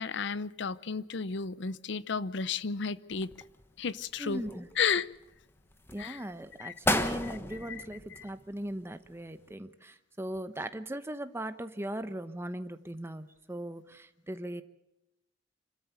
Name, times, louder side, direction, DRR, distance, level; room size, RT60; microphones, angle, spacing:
voice 1, 0.0-3.3 3.8-4.4 4.8-5.1 6.0-6.2 6.6-7.3 7.7-7.8 8.1-8.2, left 6 dB, 70° left, 17 dB, 0.7 m, -33 dB
sound 1, 3.1-3.9 4.3-5.2 5.7-6.1 6.5-6.6 6.8-8.8 9.1-9.2, left 1 dB, 15° left, 1.3 m, -33 dB
voice 2, 4.2-4.7 5.9-14.6, right 1 dB, 15° right, 10 dB, 1.0 m, -39 dB
26.5 x 13.0 x 8.1 m, 0.89 s
head